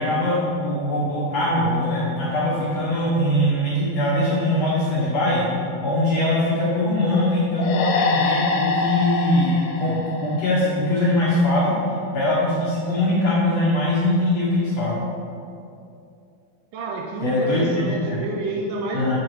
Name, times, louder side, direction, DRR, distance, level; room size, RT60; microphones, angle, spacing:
voice 1, 0.0-5.4 5.8-11.7 12.1-15.0 17.2-17.6 18.1-18.2 18.9-19.2, left 1 dB, 65° left, -7 dB, 1.8 m, -21 dB
sound 1, 7.6-11.1, left 4 dB, 85° left, 2.5 m, -25 dB
voice 2, 16.7-19.2, right 2 dB, 80° right, 0 dB, 2.0 m, -29 dB
6.9 x 4.7 x 4.7 m, 2.5 s
omnidirectional pair, 4.1 m